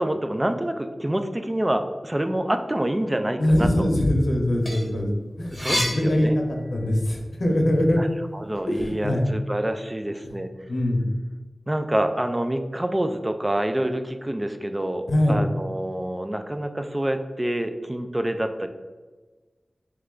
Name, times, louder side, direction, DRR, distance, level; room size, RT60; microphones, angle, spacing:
voice 1, 0.0-3.9 5.5-6.4 8.0-8.1 8.3-10.5 11.7-18.7, right 1 dB, 20° right, 7 dB, 0.3 m, -27 dB
voice 2, 3.4-5.1 5.4-8.0 8.7-9.2 10.2-10.3 10.7-11.0 15.1-15.4, left 1 dB, 80° left, 1 dB, 0.7 m, -22 dB
sound 1, 4.4-7.1 7.5-8.9, equal, 5° left, 0.9 m, -31 dB
3.3 x 3.2 x 3.7 m, 1.3 s
wide cardioid pair, 75°, 0 cm